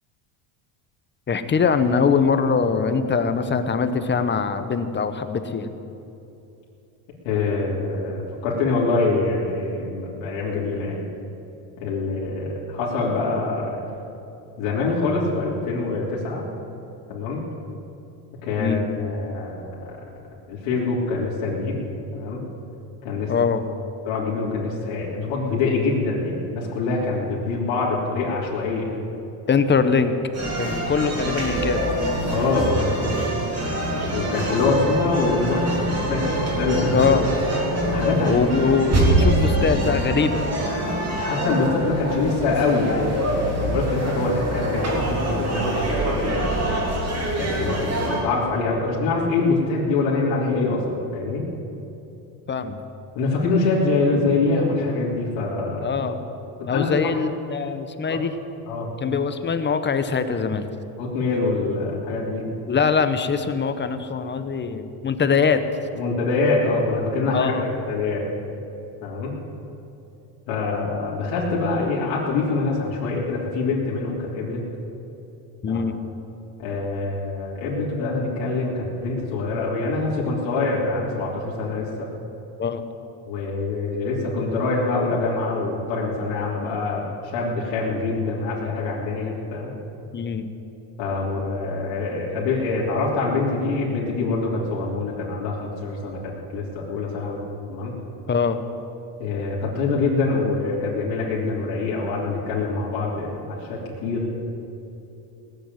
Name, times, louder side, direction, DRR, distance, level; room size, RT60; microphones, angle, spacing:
voice 1, 1.3-5.7 18.6-18.8 23.3-23.6 29.5-30.2 30.6-31.8 36.9-37.3 38.2-40.4 52.5-52.8 55.8-56.2 56.7-58.3 59.0-60.7 62.7-65.6 67.3-67.6 75.6-76.0 82.6-82.8 90.1-90.5 98.3-98.6, left 5 dB, 20° left, 9 dB, 0.9 m, -22 dB
voice 2, 7.2-11.0 11.8-13.8 14.6-16.4 17.1-17.4 18.4-19.9 20.5-21.8 22.1-22.4 23.0-23.3 24.0-28.9 32.3-33.1 34.1-37.1 37.9-38.5 41.1-46.5 47.4-51.5 53.1-56.0 56.6-57.1 58.7-58.9 61.0-62.5 66.0-68.2 69.0-69.3 70.5-74.6 75.7-75.8 76.6-82.1 83.3-89.7 91.0-97.4 97.7-97.9 99.2-104.3, left 3 dB, 65° left, -5 dB, 3.4 m, -25 dB
sound 1, 30.3-48.2, right 1 dB, 30° right, 4.0 m, -24 dB
18.5 x 7.3 x 9.5 m, 2.9 s
supercardioid pair, 120°, 50 cm